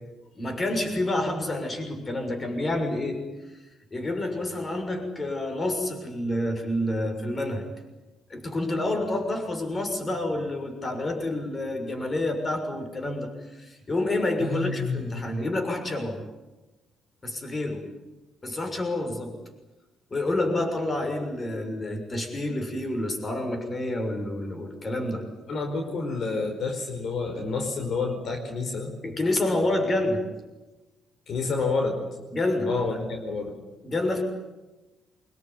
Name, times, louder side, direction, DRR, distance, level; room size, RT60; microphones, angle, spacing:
voice 1, 0.3-3.2 3.9-7.7 8.3-13.3 13.5-16.2 17.2-17.8 18.4-19.4 20.1-25.2 29.0-30.2 32.3-32.7 33.8-34.2, left 1 dB, 30° left, 5 dB, 6.5 m, -28 dB
voice 2, 14.4-15.3 25.5-28.9 31.3-32.0 32.7-33.6, left 4 dB, 60° left, 4 dB, 4.8 m, -29 dB
25.0 x 21.5 x 9.9 m, 1.1 s
cardioid pair, 90°, 0 cm